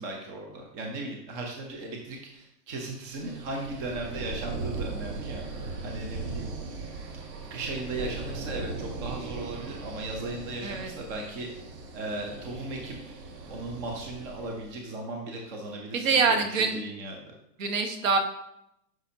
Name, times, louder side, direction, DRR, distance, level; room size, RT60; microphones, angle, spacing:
voice 1, 0.0-5.4 5.8-6.5 7.5-11.5 11.9-13.0 13.5-17.2, right 2 dB, 20° right, 1 dB, 0.7 m, -37 dB
sound 1, 3.0-14.8, right 3 dB, 75° right, 2.1 m, -38 dB
voice 2, 10.6-10.9 15.9-16.8 17.6-18.2, right 4 dB, 50° right, 5 dB, 1.3 m, -25 dB
10.0 x 6.2 x 2.8 m, 0.80 s
hypercardioid pair, 160°, 49 cm